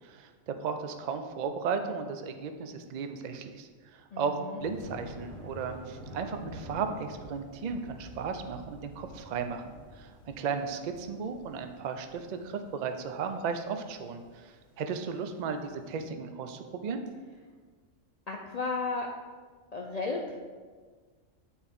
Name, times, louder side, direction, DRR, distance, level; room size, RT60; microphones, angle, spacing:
voice 1, 0.0-17.0, right 5 dB, 65° right, 7 dB, 0.4 m, -35 dB
voice 2, 4.1-4.6 18.3-19.1 19.7-20.4, left 3 dB, 65° left, 0 dB, 0.4 m, -34 dB
Thunder, 4.6-15.7, equal, 40° right, 1.4 m, -49 dB
8.7 x 4.4 x 3.6 m, 1.5 s
omnidirectional pair, 1.4 m